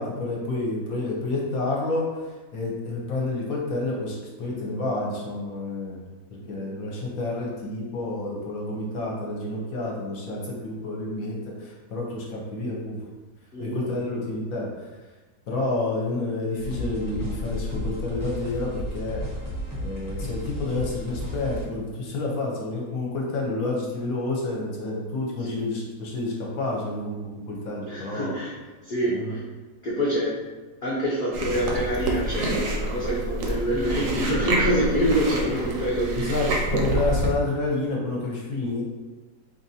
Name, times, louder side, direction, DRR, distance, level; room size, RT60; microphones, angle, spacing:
voice 1, 0.0-2.1 2.5-6.0 6.3-13.0 13.6-14.7 15.5-19.2 19.8-28.3 29.1-29.3 35.5-35.6 36.2-38.8, left 2 dB, 65° left, -2 dB, 1.0 m, -29 dB
voice 2, 6.4-6.7 13.5-14.0 25.4-25.7 27.9-30.5 30.8-36.6, equal, 80° left, -8 dB, 0.4 m, -27 dB
sound 1, 16.6-21.6, left 1 dB, 30° right, 0.3 m, -33 dB
Chewing mastication, 31.3-37.3, right 1 dB, 65° right, 0.8 m, -27 dB
4.3 x 2.5 x 2.7 m, 1.2 s
omnidirectional pair, 1.9 m